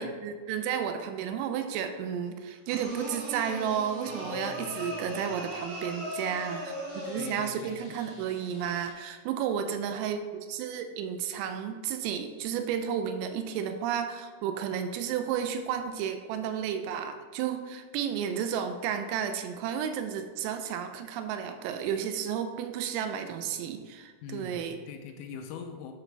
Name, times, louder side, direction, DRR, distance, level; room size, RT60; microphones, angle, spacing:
voice 1, 0.0-6.7 7.1-10.2 10.5-24.8, right 8 dB, 85° right, 7 dB, 3.2 m, -32 dB
sound 1, 2.7-7.6, equal, 65° right, 4.2 m, -38 dB
sound 2, 2.8-8.9, left 1 dB, 40° left, 2.3 m, -53 dB
voice 2, 4.1-5.4 7.2-8.0 24.2-25.9, left 6 dB, 85° left, 5 dB, 3.2 m, -43 dB
11.0 x 4.9 x 3.4 m, 1.5 s
omnidirectional pair, 6.0 m